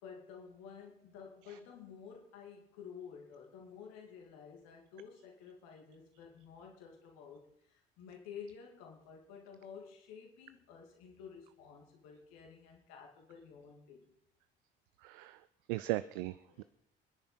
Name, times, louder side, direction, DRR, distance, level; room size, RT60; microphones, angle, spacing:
voice 1, 0.0-14.1 16.5-16.6, left 6 dB, 60° left, 1 dB, 2.5 m, -52 dB
voice 2, 15.0-15.4 15.7-16.6, right 17 dB, 65° right, 15 dB, 0.5 m, -37 dB
25.5 x 10.5 x 4.3 m, 0.74 s
figure-of-eight pair, 50°, 29 cm